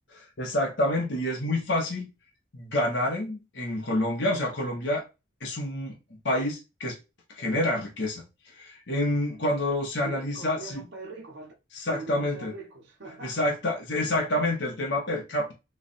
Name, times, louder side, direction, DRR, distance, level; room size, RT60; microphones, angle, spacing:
voice 1, 0.1-2.1 2.5-5.1 5.4-6.0 6.2-7.0 7.3-8.2 8.5-10.8 11.7-12.5 13.2-15.5, left 1 dB, 65° left, 1.1 m, -28 dB
voice 2, 10.0-11.5 11.9-13.6 14.0-14.1, right 2 dB, 70° right, 1.1 m, -42 dB
3.2 x 2.4 x 4.1 m
head